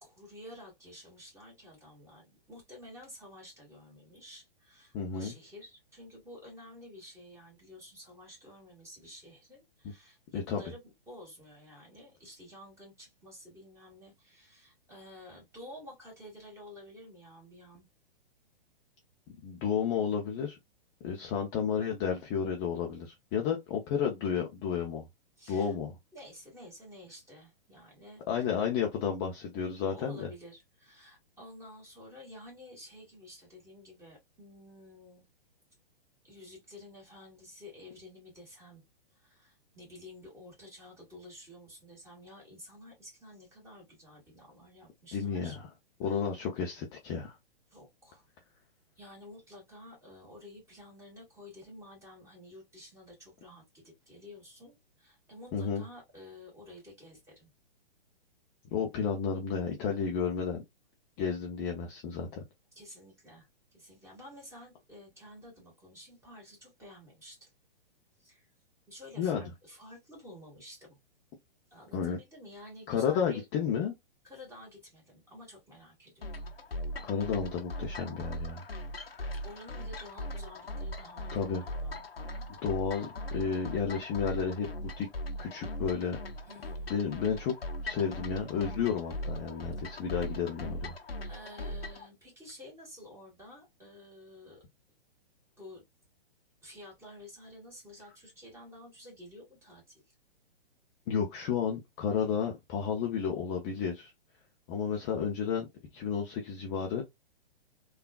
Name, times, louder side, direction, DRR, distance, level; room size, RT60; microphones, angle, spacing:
voice 1, 0.0-10.8 11.1-17.9 25.4-25.7 26.1-28.5 29.9-35.2 36.2-38.8 39.1-45.6 46.0-46.2 47.7-48.2 49.0-57.5 62.7-63.5 63.7-67.5 68.2-68.5 68.9-71.0 71.7-73.5 74.2-76.5 79.4-82.5 86.5-86.9 91.2-94.6 95.6-95.8 96.6-100.0, left 1 dB, 10° right, 2.0 m, -51 dB
voice 2, 4.9-5.3 10.3-10.6 19.4-20.6 21.0-25.0 25.5-25.9 28.3-30.3 45.1-45.6 46.0-47.4 55.5-55.8 58.7-60.6 61.2-62.4 69.2-69.4 71.9-72.2 72.9-73.9 77.0-78.6 81.3-81.6 82.6-84.7 85.0-85.1 85.4-86.2 86.9-87.6 87.8-90.9 101.1-104.1 104.7-105.6 105.9-107.0, left 7 dB, 25° left, 0.5 m, -32 dB
sound 1, 76.2-92.1, left 1 dB, 90° left, 0.7 m, -39 dB
3.5 x 2.4 x 2.3 m
figure-of-eight pair, 120°, 29 cm